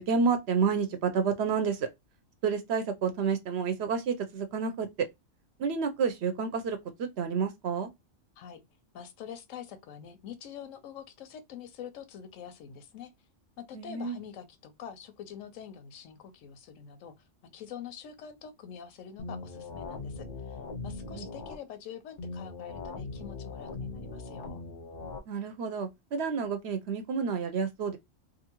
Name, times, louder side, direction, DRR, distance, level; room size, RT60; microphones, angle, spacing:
voice 1, 0.0-1.9 2.4-5.1 5.6-7.9 13.7-14.2 21.1-21.3 25.3-28.0, right 5 dB, 65° right, 0.7 m, -30 dB
voice 2, 8.9-13.1 13.6-17.1 17.5-20.6 20.8-24.6, left 8 dB, 85° left, 1.0 m, -45 dB
sound 1, 19.2-21.6 22.2-25.2, left 3 dB, 50° left, 0.6 m, -40 dB
2.6 x 2.5 x 2.8 m
omnidirectional pair, 1.3 m